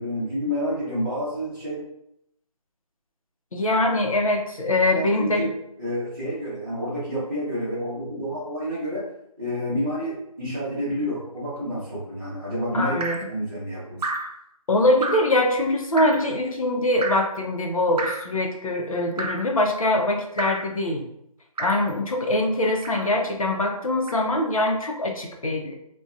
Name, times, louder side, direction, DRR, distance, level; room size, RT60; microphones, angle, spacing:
voice 1, 0.0-1.8 4.9-5.5 5.8-9.1 9.4-14.1, equal, 35° right, -11 dB, 0.8 m, -29 dB
voice 2, 3.5-5.5 12.7-13.2 14.7-21.0 21.6-25.7, left 1 dB, 65° left, 1 dB, 0.6 m, -23 dB
Drip, 13.0-13.3 14.0-14.4 15.0-15.4 16.0-16.3 17.0-17.4 18.0-18.3 19.2-19.5 20.4-20.7 21.6-21.9 22.8-23.2 24.1-24.3, right 2 dB, 90° right, 0.5 m, -31 dB
2.5 x 2.2 x 2.4 m, 0.77 s
figure-of-eight pair, 180°, 20 cm